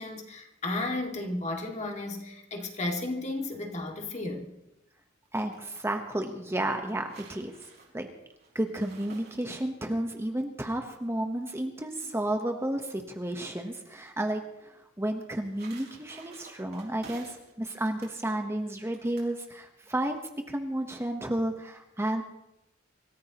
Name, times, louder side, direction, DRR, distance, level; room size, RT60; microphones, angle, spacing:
voice 1, 0.0-4.5 12.0-12.1, left 2 dB, 35° left, 2 dB, 2.1 m, -33 dB
sound 1, 5.2-5.8 6.6-9.9 15.1-17.5 17.8-18.2 18.9-19.3, right 4 dB, 60° right, 5.2 m, -52 dB
voice 2, 5.3-7.5 7.9-8.1 8.5-20.2 20.5-22.2, right 1 dB, 15° right, 4 dB, 1.0 m, -32 dB
26.0 x 14.5 x 3.0 m, 0.87 s
head